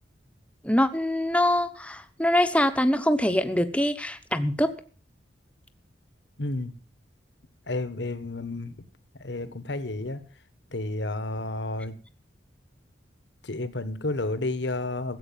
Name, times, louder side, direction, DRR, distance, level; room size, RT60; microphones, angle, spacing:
voice 1, 0.6-4.7, left 1 dB, 5° left, 1.1 m, -24 dB
voice 2, 6.4-6.7 7.7-8.7 9.2-10.2 10.7-11.9 13.4-15.2, left 2 dB, 65° left, 1.4 m, -31 dB
15.5 x 8.1 x 7.4 m
head